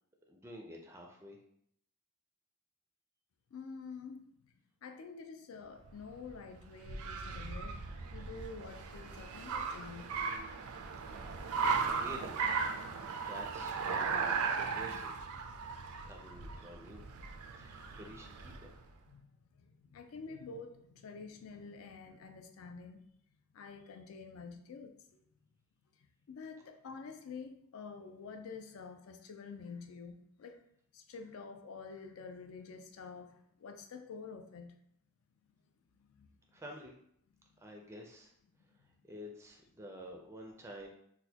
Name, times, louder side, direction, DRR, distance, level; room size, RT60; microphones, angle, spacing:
voice 1, 0.3-1.4 11.9-12.4 13.3-15.3 16.0-17.0 17.6-18.8 36.5-36.9 37.6-38.3 39.0-40.9, equal, 10° right, 1 dB, 0.4 m, -49 dB
voice 2, 3.5-4.5 4.8-7.8 8.1-10.1 19.1-19.3 19.6-23.0 23.5-25.2 26.3-30.6 30.9-34.7 36.0-36.3 38.8-38.9, left 4 dB, 70° left, 7 dB, 0.4 m, -48 dB
Car, 5.8-18.8, right 5 dB, 80° right, 0.4 m, -37 dB
4.1 x 2.1 x 2.8 m, 0.70 s
head